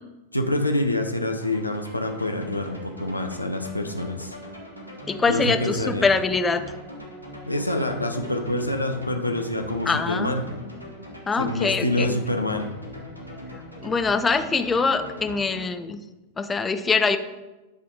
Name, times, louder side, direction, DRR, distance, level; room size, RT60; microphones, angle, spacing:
voice 1, 0.3-4.3 5.3-6.1 7.5-10.4 11.4-12.7, left 1 dB, 85° left, 5 dB, 0.5 m, -26 dB
sound 1, 1.4-15.6, equal, 85° right, 1.2 m, -40 dB
voice 2, 5.1-6.6 9.9-10.4 11.3-12.2 13.8-16.0 16.4-17.2, left 4 dB, 15° left, 9 dB, 0.4 m, -23 dB
8.7 x 3.4 x 4.7 m, 1.1 s
figure-of-eight pair, 90°, 0 cm